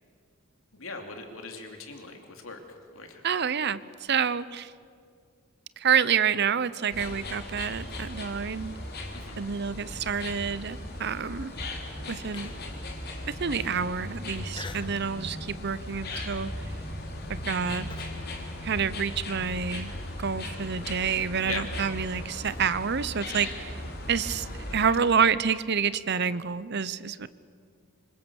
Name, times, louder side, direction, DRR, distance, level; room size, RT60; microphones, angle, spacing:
voice 1, 0.7-3.2 9.1-9.4 21.4-21.7 24.7-24.8, left 4 dB, 80° left, 4 dB, 3.0 m, -40 dB
voice 2, 3.2-4.7 5.8-8.7 9.4-11.5 12.1-12.5 13.4-16.5 17.3-17.9 18.6-19.9 20.2-23.8 24.1-27.3, right 6 dB, 55° right, 16 dB, 0.7 m, -28 dB
sound 1, 6.9-24.9, left 1 dB, 50° left, 3.5 m, -37 dB
Human voice, 12.3-12.8 13.3-13.4 14.5-15.0 15.4-15.7 16.1-18.2, left 3 dB, 25° left, 1.4 m, -45 dB
26.5 x 25.5 x 7.2 m, 2.3 s
head